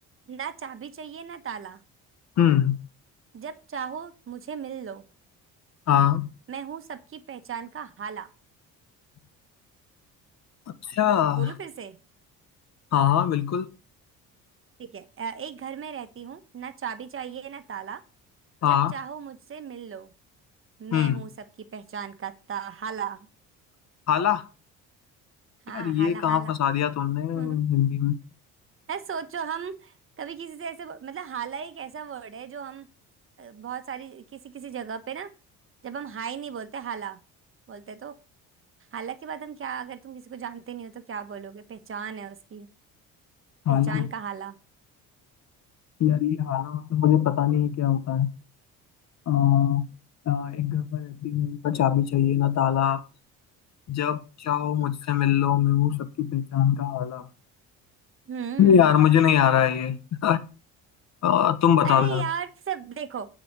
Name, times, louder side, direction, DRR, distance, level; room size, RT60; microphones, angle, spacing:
voice 1, 0.3-1.8 3.3-5.0 6.5-8.3 11.3-12.0 14.8-18.0 18.6-20.1 20.8-21.3 21.6-23.3 25.7-26.5 27.3-27.6 28.9-32.9 33.4-35.3 35.8-37.2 37.7-38.2 38.9-42.7 43.7-44.6 58.3-59.0 61.8-63.3, right 7 dB, 40° right, 1.3 m, -36 dB
voice 2, 2.4-2.8 5.9-6.3 10.9-11.5 12.9-13.7 18.6-18.9 20.9-21.2 24.1-24.4 25.7-28.2 43.7-44.1 46.0-48.3 49.3-49.9 50.3-53.0 53.9-57.3 58.6-60.0 60.2-60.4 61.2-62.2, left 10 dB, 50° left, 1.1 m, -22 dB
9.0 x 5.1 x 6.7 m
cardioid pair, 95°, 34 cm